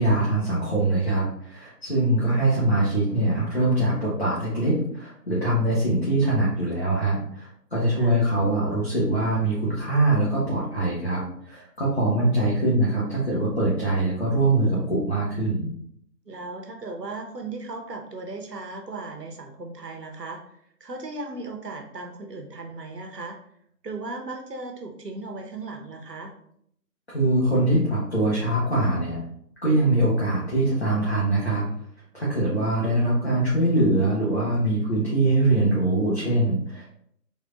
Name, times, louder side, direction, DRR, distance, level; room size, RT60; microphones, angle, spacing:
voice 1, 0.0-15.7 27.1-29.2 29.6-31.6 32.1-36.8, right 1 dB, 40° left, -8 dB, 0.8 m, -23 dB
voice 2, 16.3-23.4 23.8-26.3, right 3 dB, 70° right, 3 dB, 0.8 m, -37 dB
3.3 x 2.8 x 2.4 m, 0.69 s
figure-of-eight pair, 165°, 50 cm